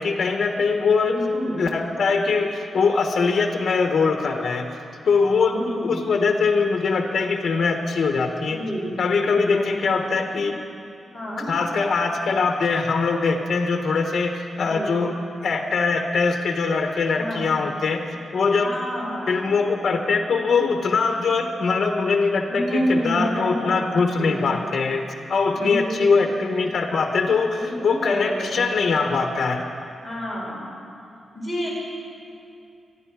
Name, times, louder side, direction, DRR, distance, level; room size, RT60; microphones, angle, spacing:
voice 1, 0.0-1.2 1.6-4.8 5.0-8.6 9.0-10.6 11.5-15.1 15.4-18.7 19.3-29.6, left 4 dB, 45° left, 3 dB, 1.1 m, -22 dB
voice 2, 1.0-1.6 5.4-6.0 8.4-9.0 9.3-10.0 11.1-11.5 14.5-15.0 17.2-17.6 18.6-19.5 22.5-24.4 25.5-26.2 27.5-28.6 30.0-30.7 31.3-31.7, equal, ahead, -6 dB, 4.8 m, -29 dB
24.5 x 11.5 x 4.8 m, 2.5 s
wide cardioid pair, 165°, 0 cm